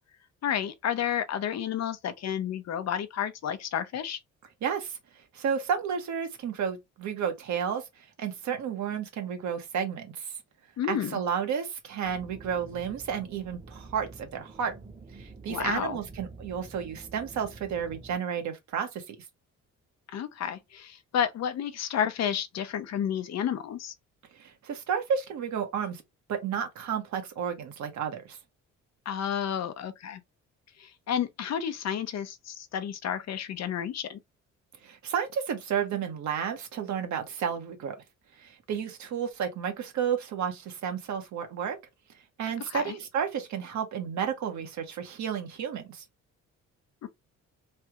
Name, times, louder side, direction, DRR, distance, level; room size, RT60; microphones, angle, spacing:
voice 1, 0.4-4.2 10.8-11.2 15.5-16.0 20.1-23.9 29.1-30.2 30.8-34.2 42.7-43.0 47.0-47.1, left 9 dB, 60° left, 0.7 m, -31 dB
voice 2, 4.6-5.0 5.3-7.8 8.2-10.3 10.9-14.7 15.2-19.2 24.4-26.0 26.3-28.4 34.8-37.9 38.4-41.8 42.4-46.0, right 7 dB, 70° right, 1.0 m, -32 dB
sound 1, 12.0-18.2, right 3 dB, 20° right, 0.7 m, -48 dB
3.3 x 2.3 x 2.9 m
cardioid pair, 90°, 30 cm